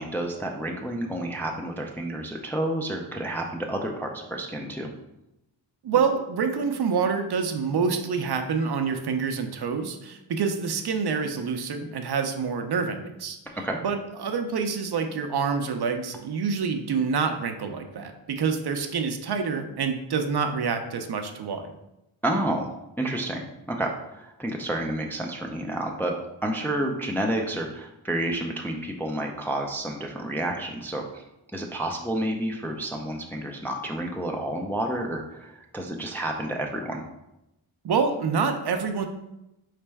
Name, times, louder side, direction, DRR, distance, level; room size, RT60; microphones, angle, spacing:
voice 1, 0.0-4.9 13.6-13.8 22.2-22.7 23.0-26.1 26.4-31.2 31.5-37.0, right 1 dB, 5° left, 1 dB, 0.4 m, -30 dB
voice 2, 5.8-13.4 13.8-21.7 37.8-39.1, right 5 dB, 55° right, 6 dB, 0.5 m, -27 dB
4.2 x 3.2 x 3.4 m, 0.89 s
cardioid pair, 80°, 48 cm